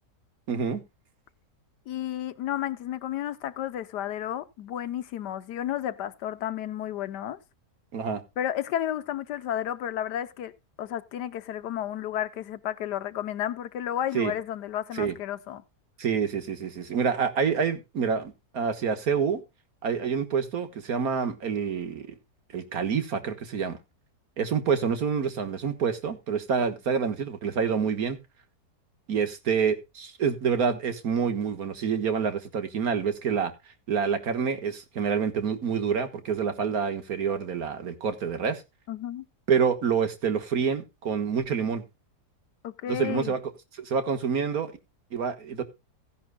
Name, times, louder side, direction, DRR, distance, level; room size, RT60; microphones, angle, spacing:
voice 1, 0.5-0.8 7.9-8.2 14.1-14.3 14.9-15.1 16.0-19.4 19.8-22.1 22.5-23.8 24.4-28.2 29.1-33.5 33.9-38.6 39.5-41.8 42.9-43.4 43.8-44.7 45.1-45.6, right 6 dB, 60° right, 1.9 m, -27 dB
voice 2, 1.9-7.4 8.4-15.6 38.9-39.2 42.6-43.3, left 11 dB, 80° left, 1.4 m, -32 dB
16.0 x 10.5 x 2.2 m
omnidirectional pair, 1.8 m